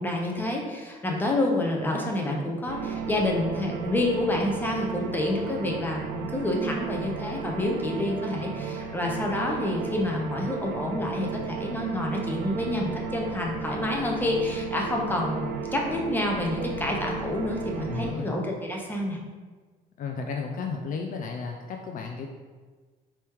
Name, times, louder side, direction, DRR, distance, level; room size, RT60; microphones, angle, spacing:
voice 1, 0.0-19.2, left 1 dB, 10° left, 0 dB, 0.8 m, -28 dB
sound 1, 2.7-18.1, right 5 dB, 80° right, 0.5 m, -34 dB
voice 2, 17.8-18.3 20.0-22.3, left 5 dB, 50° left, 3 dB, 0.4 m, -33 dB
4.2 x 3.0 x 3.6 m, 1.4 s
cardioid pair, 110°, 17 cm